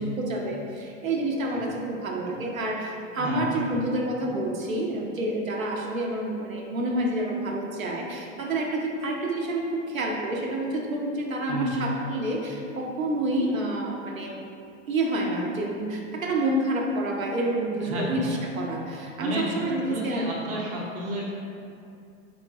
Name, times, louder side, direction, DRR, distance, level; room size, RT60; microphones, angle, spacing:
voice 1, 0.0-14.4 14.9-20.3, right 1 dB, 85° right, 0 dB, 0.5 m, -28 dB
voice 2, 3.2-3.7 11.5-11.7 17.8-18.2 19.2-19.4 19.8-21.3, right 1 dB, 20° right, -4 dB, 0.5 m, -32 dB
3.6 x 3.0 x 2.2 m, 2.6 s
figure-of-eight pair, 95°, 40 cm